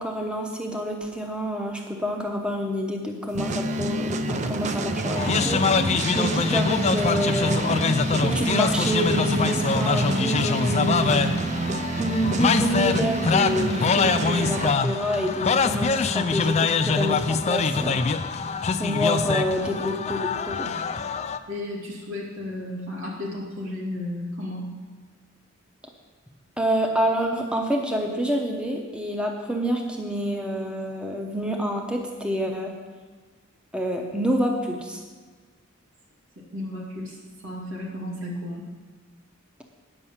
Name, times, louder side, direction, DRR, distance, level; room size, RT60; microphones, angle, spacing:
voice 1, 0.0-5.9 6.1-7.8 8.2-11.4 12.0-18.0 18.8-20.7 26.6-32.7 33.7-35.0, equal, 5° right, 2 dB, 0.8 m, -27 dB
sound 1, 3.4-14.7, right 2 dB, 35° right, 0.4 m, -28 dB
sound 2, 5.2-21.4, left 4 dB, 30° left, 0.4 m, -24 dB
voice 2, 21.5-24.7 36.5-37.2 37.4-38.6, left 1 dB, 85° right, -2 dB, 2.5 m, -33 dB
9.6 x 5.4 x 7.2 m, 1.5 s
head